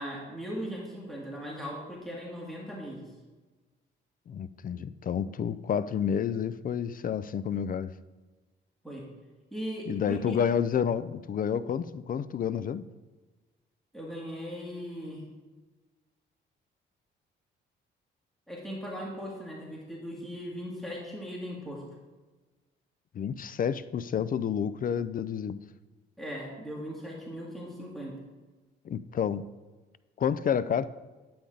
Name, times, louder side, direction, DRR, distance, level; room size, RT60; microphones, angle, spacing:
voice 1, 0.0-3.0 8.8-9.0 9.5-10.4 13.9-15.3 18.5-21.8 26.2-28.1, equal, ahead, -4 dB, 2.6 m, -38 dB
voice 2, 4.3-7.9 9.9-12.8 23.1-25.6 28.9-29.5 30.2-30.9, left 8 dB, 45° left, 16 dB, 0.4 m, -29 dB
9.9 x 8.6 x 3.9 m, 1.2 s
cardioid pair, 90°, 20 cm